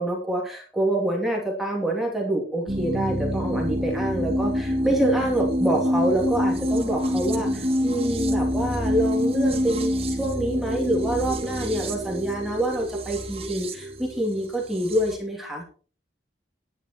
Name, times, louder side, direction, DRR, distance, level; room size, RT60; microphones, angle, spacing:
voice 1, 0.0-15.6, right 1 dB, ahead, -1 dB, 2.7 m, -26 dB
sound 1, 2.7-15.1, equal, 30° right, 2.0 m, -26 dB
11.0 x 10.5 x 4.4 m, 0.39 s
head